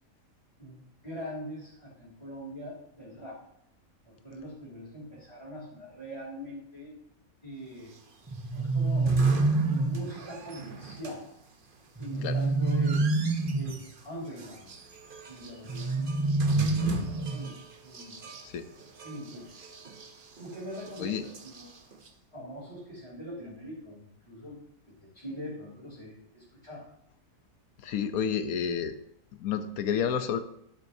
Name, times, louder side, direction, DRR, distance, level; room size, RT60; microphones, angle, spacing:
voice 1, 0.6-3.4 4.0-6.9 7.4-7.9 8.5-9.2 9.6-11.2 12.0-13.1 13.5-14.9 15.3-16.1 16.6-18.2 19.0-19.6 20.4-21.7 22.3-24.6 24.9-26.9, equal, 20° left, -10 dB, 3.3 m, -42 dB
sound 1, 7.8-22.1, right 5 dB, 40° right, 1.0 m, -43 dB
sound 2, 8.3-10.1 12.0-13.8 15.7-17.6, right 3 dB, 25° right, 0.3 m, -27 dB
voice 2, 27.8-29.0 29.3-30.4, left 7 dB, 85° left, 10 dB, 1.2 m, -30 dB
12.0 x 8.0 x 2.8 m, 0.74 s
omnidirectional pair, 1.5 m